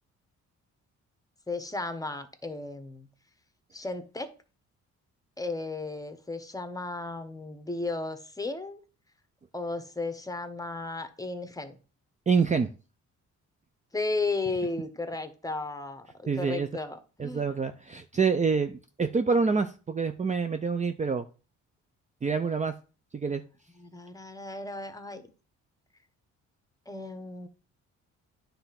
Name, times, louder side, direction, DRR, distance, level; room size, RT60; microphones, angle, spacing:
voice 1, 1.5-3.1 3.7-4.3 5.4-8.8 9.5-11.8 13.9-17.5 23.7-25.2 26.9-27.5, left 3 dB, 10° left, 9 dB, 1.1 m, -34 dB
voice 2, 12.3-12.7 16.3-16.7 17.2-21.2 22.2-22.7 23.1-23.4, right 5 dB, 25° right, 8 dB, 0.6 m, -26 dB
9.6 x 3.4 x 5.8 m, 0.36 s
cardioid pair, 90°, 30 cm